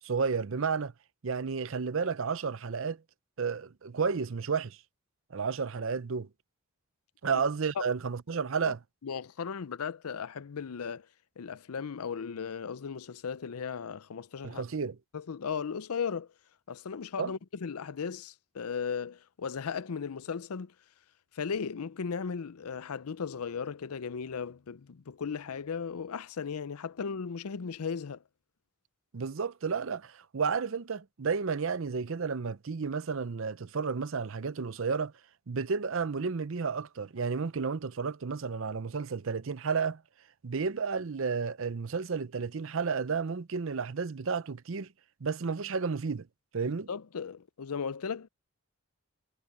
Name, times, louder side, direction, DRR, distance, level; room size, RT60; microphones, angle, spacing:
voice 1, 0.0-0.9 1.2-3.0 3.4-4.8 5.3-6.3 7.2-8.8 14.4-15.0 17.2-17.3 29.1-35.1 35.5-40.0 40.4-44.9 45.2-46.3 46.5-46.9, right 5 dB, 60° right, 0.6 m, -32 dB
voice 2, 9.0-11.1 11.4-14.6 15.1-16.3 16.7-20.7 21.3-28.2 46.9-48.3, left 6 dB, 85° left, 0.6 m, -36 dB
head